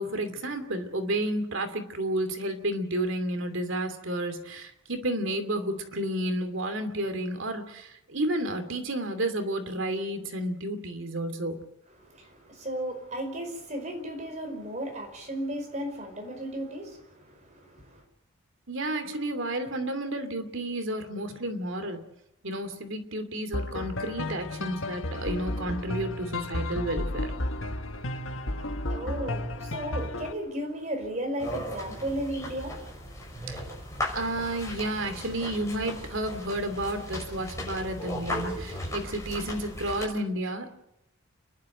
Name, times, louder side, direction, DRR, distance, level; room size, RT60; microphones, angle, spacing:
voice 1, 0.0-11.6 18.7-22.0 22.4-27.3 33.5-33.6 34.1-40.8, right 1 dB, 65° right, 8 dB, 2.7 m, -31 dB
voice 2, 12.0-18.0 28.0-33.7 34.0-34.2, right 1 dB, 35° right, 3 dB, 5.2 m, -35 dB
sound 1, 23.5-30.3, left 1 dB, 70° left, 1.4 m, -33 dB
sound 2, 31.4-40.1, left 1 dB, 15° left, 6.1 m, -37 dB
29.5 x 11.5 x 9.1 m, 0.84 s
head